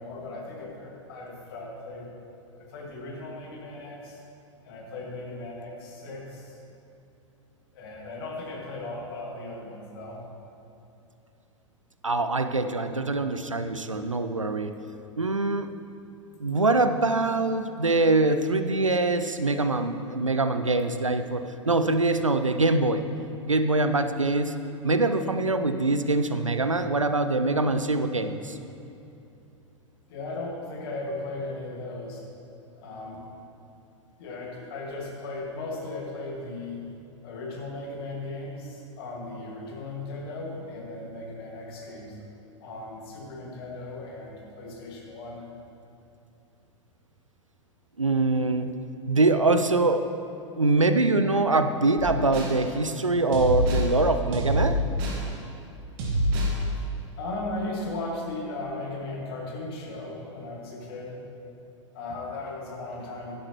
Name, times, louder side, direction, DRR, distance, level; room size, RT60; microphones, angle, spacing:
voice 1, 0.0-2.1 2.6-4.2 4.6-6.6 7.7-10.2 30.1-32.2 32.8-33.2 34.2-36.8 37.2-42.3 42.6-45.5 57.2-61.2 61.9-63.4, left 2 dB, 50° left, -1 dB, 1.9 m, -37 dB
voice 2, 12.0-14.7 15.2-15.7 16.4-23.0 23.4-24.5 24.8-28.6 48.0-48.7 49.1-50.1 50.6-54.8, right 2 dB, 90° right, 9 dB, 0.5 m, -24 dB
sound 1, 52.0-52.6 53.3-53.9 54.3-55.2 56.0-56.6, equal, 45° right, 1.7 m, -26 dB
11.0 x 10.5 x 3.0 m, 2.8 s
figure-of-eight pair, 90°, 16 cm